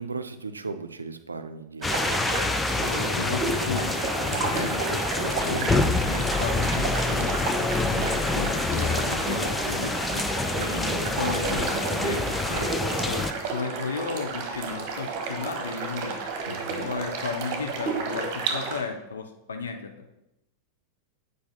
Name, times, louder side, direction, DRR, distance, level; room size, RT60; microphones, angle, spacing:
voice 1, 0.0-2.0 16.4-16.9, right 4 dB, 75° right, 10 dB, 0.5 m, -37 dB
sound 1, 1.8-13.3, left 3 dB, 10° left, 0.5 m, -27 dB
sound 2, 1.8-18.8, right 4 dB, 40° right, 1.4 m, -31 dB
voice 2, 2.8-10.3 10.6-16.2 16.5-20.1, left 5 dB, 70° left, 5 dB, 0.6 m, -35 dB
8.2 x 4.9 x 4.1 m, 0.87 s
figure-of-eight pair, 90°, 0 cm